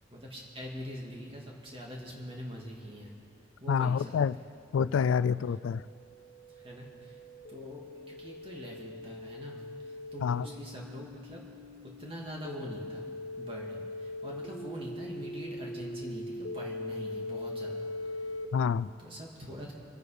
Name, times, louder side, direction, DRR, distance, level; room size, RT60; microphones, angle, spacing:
voice 1, 0.1-3.1 3.6-4.2 4.9-5.2 6.5-7.2 7.5-7.8 8.1-11.4 12.0-13.0 13.4-17.9 18.2-18.3 19.0-19.7, equal, 25° right, -2 dB, 2.4 m, -43 dB
voice 2, 3.7-4.3 4.7-5.8 10.2-10.4 18.5-18.9, left 6 dB, 85° left, 18 dB, 0.3 m, -27 dB
sound 1, 5.3-18.4, left 1 dB, 70° left, 1.1 m, -41 dB
25.5 x 9.2 x 5.1 m, 2.4 s
head